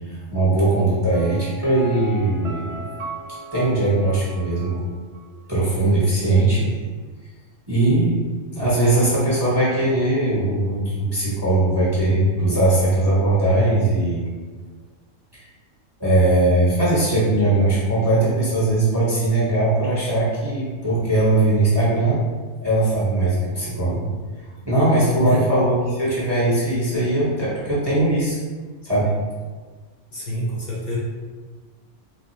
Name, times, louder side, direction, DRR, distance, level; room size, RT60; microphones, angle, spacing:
voice 1, 0.1-2.8 3.5-4.8 5.5-6.7 7.7-8.2 8.5-14.3 15.3-15.4 16.0-22.2 22.6-24.1 24.6-28.4 28.8-29.1, right 2 dB, 25° right, -9 dB, 0.8 m, -20 dB
Piano, 1.1-4.9 5.1-5.2, right 2 dB, 65° right, 0.8 m, -36 dB
voice 2, 30.1-31.0, equal, 55° left, -6 dB, 1.0 m, -27 dB
3.4 x 2.0 x 3.9 m, 1.4 s
omnidirectional pair, 1.3 m